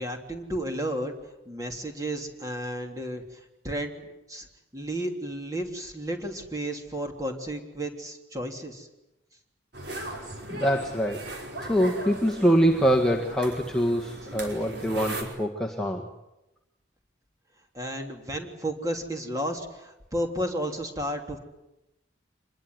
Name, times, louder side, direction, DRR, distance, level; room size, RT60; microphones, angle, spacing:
voice 1, 0.0-4.5 4.7-8.9 17.7-21.4, right 1 dB, 15° right, 3 dB, 3.2 m, -33 dB
sound 1, 9.7-15.2, right 1 dB, 60° right, 5.1 m, -38 dB
voice 2, 10.5-16.1, equal, 5° left, -1 dB, 1.7 m, -24 dB
26.0 x 21.5 x 9.6 m, 0.94 s
head